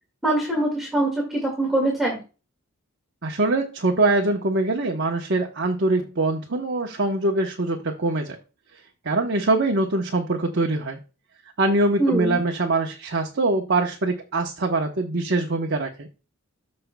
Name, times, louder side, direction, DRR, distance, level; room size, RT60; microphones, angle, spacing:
voice 1, 0.2-2.2 12.0-12.4, right 1 dB, ahead, -2 dB, 2.0 m, -23 dB
voice 2, 3.2-8.4 9.0-11.0 11.6-16.1, right 2 dB, 55° right, 1 dB, 1.0 m, -23 dB
14.0 x 5.4 x 2.3 m, 0.32 s
head